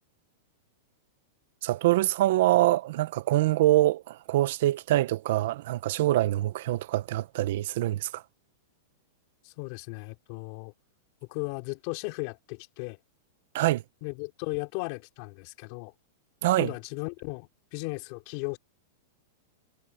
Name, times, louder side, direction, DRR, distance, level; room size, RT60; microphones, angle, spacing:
voice 1, 1.6-8.2 13.5-13.8 16.4-16.7, right 15 dB, 65° right, 1.1 m, -25 dB
voice 2, 9.4-10.7 11.3-13.0 14.0-15.9 16.6-18.6, left 27 dB, 50° left, 3.4 m, -36 dB
supercardioid pair, 140°, 0 cm